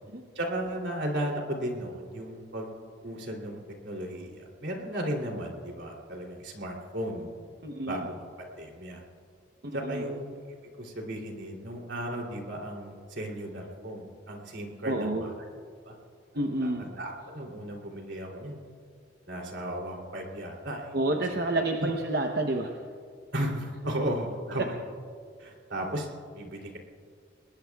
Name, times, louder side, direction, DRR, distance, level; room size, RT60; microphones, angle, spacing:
voice 1, 0.3-2.7 3.0-7.5 7.9-9.0 9.7-10.4 10.8-15.3 15.8-16.0 16.6-18.6 19.3-21.4 21.8-21.9 23.3-24.7 25.4-26.8, right 1 dB, 80° right, 1 dB, 2.9 m, -35 dB
voice 2, 7.6-8.1 9.6-10.0 14.8-15.3 16.3-16.9 20.9-22.7 24.6-24.7, right 2 dB, 55° right, 3 dB, 0.8 m, -29 dB
29.0 x 20.5 x 2.3 m, 2.2 s
head